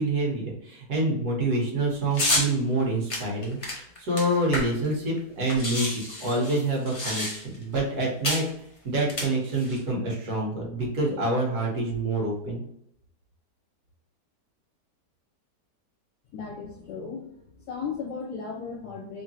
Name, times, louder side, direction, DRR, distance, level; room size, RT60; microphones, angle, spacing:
voice 1, 0.0-8.4 8.8-12.6, right 2 dB, 65° right, -2 dB, 1.7 m, -27 dB
sound 1, 2.1-2.5 3.1-4.9 5.2-5.3 5.5-7.6 8.2-8.5 9.0-9.8, left 1 dB, 35° left, 0.5 m, -29 dB
voice 2, 16.3-19.2, left 5 dB, 65° left, -4 dB, 1.4 m, -36 dB
3.6 x 3.6 x 2.8 m, 0.73 s
omnidirectional pair, 1.8 m